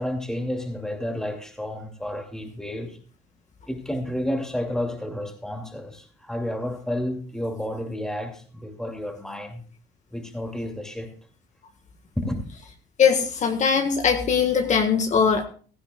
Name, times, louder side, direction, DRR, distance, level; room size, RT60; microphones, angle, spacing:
voice 1, 0.0-3.0 3.7-9.6 10.1-11.1 12.2-12.4, left 1 dB, 5° left, 2.5 m, -31 dB
voice 2, 13.0-15.4, left 6 dB, 45° left, 1.5 m, -20 dB
16.0 x 14.5 x 2.3 m
cardioid pair, 110°, 17 cm